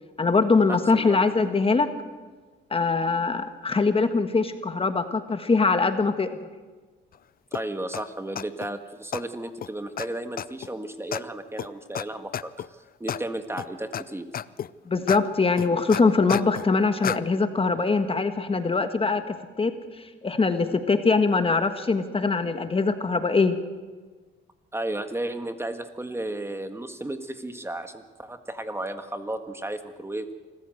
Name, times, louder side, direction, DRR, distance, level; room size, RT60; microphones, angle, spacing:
voice 1, 0.2-1.9 2.7-6.3 14.8-19.7 20.0-23.6, left 4 dB, 30° left, 8 dB, 1.6 m, -22 dB
sound 1, 7.5-7.6 7.9-8.0 8.4-8.7 9.1-9.2 9.6-9.7 10.0-10.1 10.4-10.7 11.1-11.2 11.6-11.7 12.0-12.1 12.3-12.7 13.1-13.2 13.6-14.0 14.3-14.7 15.1-15.2 15.6-16.7 17.0-17.2, left 9 dB, 45° left, 0.6 m, -31 dB
voice 2, 7.5-12.6 13.0-14.3 24.7-30.3, right 1 dB, 10° right, 8 dB, 1.7 m, -33 dB
26.0 x 14.5 x 7.9 m, 1.4 s
cardioid pair, 90°, 20 cm